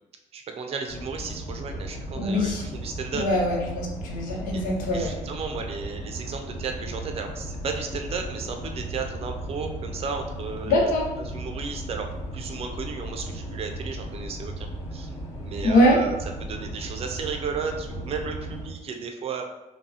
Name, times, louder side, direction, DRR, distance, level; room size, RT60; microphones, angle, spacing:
voice 1, 0.3-3.2 4.5-4.6 4.9-10.9 11.2-12.1 12.3-15.1 15.4-16.1 16.4-19.4, right 5 dB, 45° right, 5 dB, 0.5 m, -34 dB
sound 1, 0.9-18.7, right 1 dB, 20° left, 0.7 m, -36 dB
voice 2, 2.2-2.6 3.1-5.1 10.7-11.0 15.6-16.0, left 1 dB, 80° left, -1 dB, 1.0 m, -22 dB
5.3 x 2.3 x 2.8 m, 1.0 s
cardioid pair, 135°, 14 cm